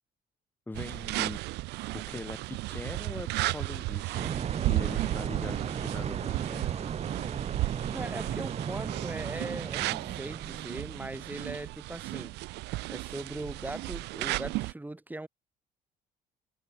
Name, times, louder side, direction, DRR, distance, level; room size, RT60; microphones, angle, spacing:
voice 1, 0.7-1.4 1.9-4.3 4.6-6.6, left 2 dB, 10° left, 2.0 m, -41 dB
sound 1, 0.7-14.7, right 20 dB, 90° right, 1.5 m, -34 dB
sound 2, 4.1-10.8, right 7 dB, 40° right, 1.8 m, -35 dB
voice 2, 7.9-12.3 12.9-15.3, right 2 dB, 10° right, 6.6 m, -40 dB
cardioid pair, 110°, 17 cm